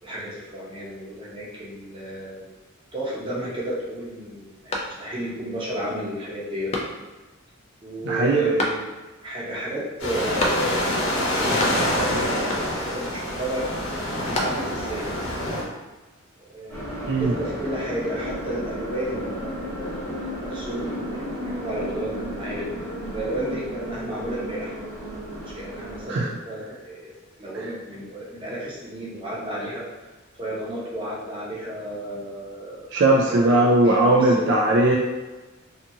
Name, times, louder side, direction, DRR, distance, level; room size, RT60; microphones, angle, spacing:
voice 1, 0.0-2.5 2.9-6.7 7.8-8.8 9.2-10.8 11.1-13.7 14.3-15.1 16.4-16.8 17.2-19.8 20.2-22.7 23.1-24.7 25.6-27.1 27.4-29.8 30.4-32.9 33.3-34.7, right 1 dB, 25° right, -7 dB, 0.8 m, -32 dB
sound 1, 4.7-5.4 5.8-5.9 6.7-7.3 8.6-9.2 10.4-11.0 11.3-12.1 12.5-13.0 14.0-14.9, left 1 dB, 30° left, 0.4 m, -30 dB
voice 2, 8.0-8.5 17.1-17.3 26.1-26.3 32.9-35.0, right 2 dB, 55° right, -2 dB, 0.3 m, -19 dB
sound 2, 10.0-15.6, left 1 dB, 65° left, 0.8 m, -26 dB
sound 3, 16.7-26.1, equal, 15° left, 1.0 m, -33 dB
2.6 x 2.4 x 2.7 m, 1.2 s
head